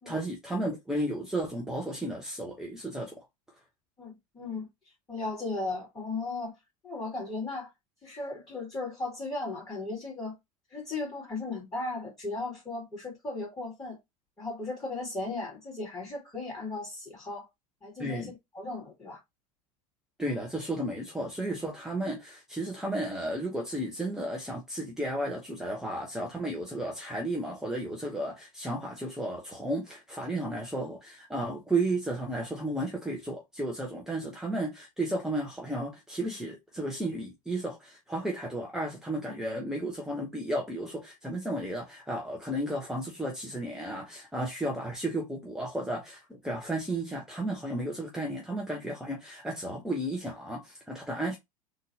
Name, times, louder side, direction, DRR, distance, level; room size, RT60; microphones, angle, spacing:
voice 1, 0.1-3.2 18.0-18.3 20.2-51.4, right 1 dB, 5° right, 0.9 m, -33 dB
voice 2, 4.0-4.7 5.1-6.5 6.8-7.7 8.0-10.3 10.7-14.0 14.4-17.5 17.8-19.2, left 3 dB, 20° left, 2.3 m, -36 dB
3.8 x 2.6 x 2.8 m
hypercardioid pair, 90°, 19 cm